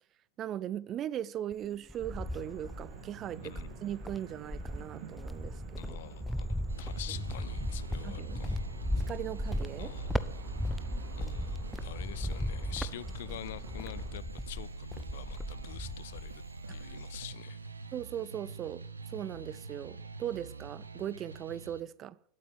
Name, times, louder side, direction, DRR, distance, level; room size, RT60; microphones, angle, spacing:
voice 1, 0.4-3.5 3.8-6.0 8.0-8.4 9.1-9.9 11.2-11.4 16.7-16.8 17.9-18.8 19.1-22.2, right 11 dB, 30° right, 0.6 m, -39 dB
Cricket, 1.5-3.0 3.5-16.5 16.8-17.3, left 1 dB, ahead, 0.8 m, -37 dB
sound 1, 2.0-14.2, right 5 dB, 45° right, 2.9 m, -49 dB
voice 2, 3.4-3.8 5.8-8.6 9.8-10.1 11.2-16.4 16.7-17.6, left 14 dB, 55° left, 0.7 m, -46 dB
sound 2, 6.7-21.8, right 3 dB, 75° right, 1.1 m, -45 dB
20.5 x 8.6 x 7.6 m
figure-of-eight pair, 90°, 0 cm